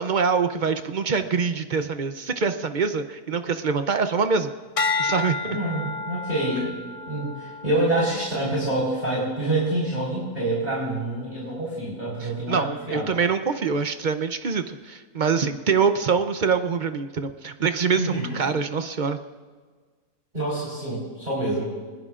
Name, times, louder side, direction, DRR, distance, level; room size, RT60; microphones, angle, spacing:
voice 1, 0.0-4.5 5.0-5.6 12.2-19.2, right 5 dB, 55° right, 8 dB, 0.5 m, -24 dB
sound 1, 4.8-9.2 9.8-10.2, left 4 dB, 60° left, 0.3 m, -31 dB
voice 2, 5.4-6.8 7.1-13.1 17.9-18.4 20.3-21.7, right 1 dB, 25° right, -6 dB, 4.4 m, -27 dB
23.0 x 20.5 x 2.5 m, 1.5 s
omnidirectional pair, 1.6 m